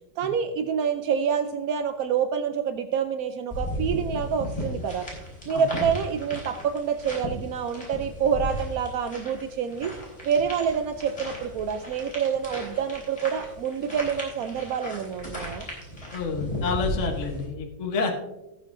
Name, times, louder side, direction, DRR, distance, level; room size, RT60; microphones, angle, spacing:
voice 1, 0.2-5.1 5.5-9.9 10.2-15.7 18.0-18.1, right 7 dB, 75° right, 8 dB, 0.8 m, -27 dB
sound 1, 3.5-17.5, equal, 15° left, 4.4 m, -35 dB
voice 2, 16.1-18.1, left 5 dB, 45° left, 2 dB, 1.3 m, -28 dB
18.0 x 8.3 x 2.6 m, 0.99 s
omnidirectional pair, 2.1 m